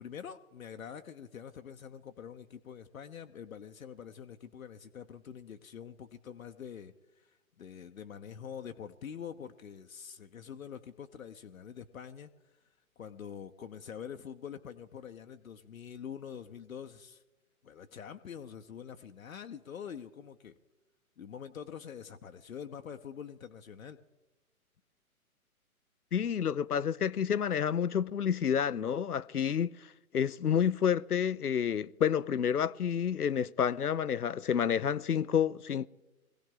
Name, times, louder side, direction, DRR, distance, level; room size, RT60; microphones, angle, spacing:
voice 1, 0.0-12.5 13.0-17.2 17.6-20.6 21.2-24.0, left 8 dB, 65° left, 0.9 m, -45 dB
voice 2, 26.1-29.7 30.1-35.9, left 8 dB, 90° left, 0.6 m, -29 dB
22.0 x 16.5 x 3.7 m
figure-of-eight pair, 125°, 44 cm